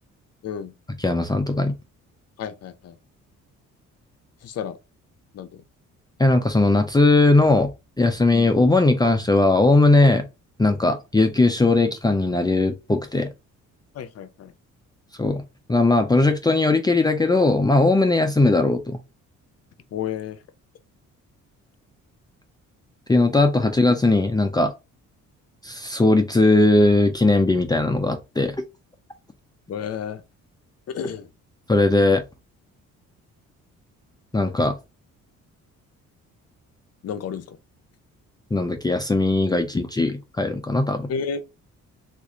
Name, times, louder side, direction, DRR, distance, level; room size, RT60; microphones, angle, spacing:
voice 1, 0.4-0.7 2.4-3.0 4.4-4.8 5.3-5.6 8.3-8.5 13.9-14.5 19.9-20.4 29.7-30.2 30.9-31.3 37.0-37.6 41.1-41.5, left 7 dB, 55° left, 0.7 m, -31 dB
voice 2, 1.0-1.7 6.2-7.7 8.0-10.2 10.6-13.3 15.2-15.4 15.7-19.0 23.1-24.7 25.6-28.6 31.7-32.2 34.3-34.7 38.5-41.1, left 2 dB, 15° left, 0.5 m, -19 dB
3.1 x 2.5 x 3.6 m
cardioid pair, 90°, 30 cm